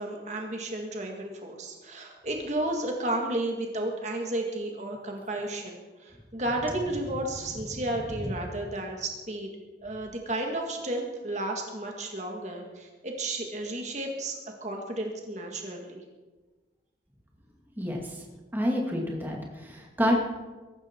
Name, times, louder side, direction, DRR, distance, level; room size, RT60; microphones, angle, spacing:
voice 1, 0.0-9.5 9.8-16.0, right 1 dB, 40° right, 1 dB, 1.9 m, -33 dB
voice 2, 18.5-20.2, equal, 10° right, -1 dB, 2.2 m, -27 dB
22.0 x 12.0 x 4.5 m, 1.3 s
head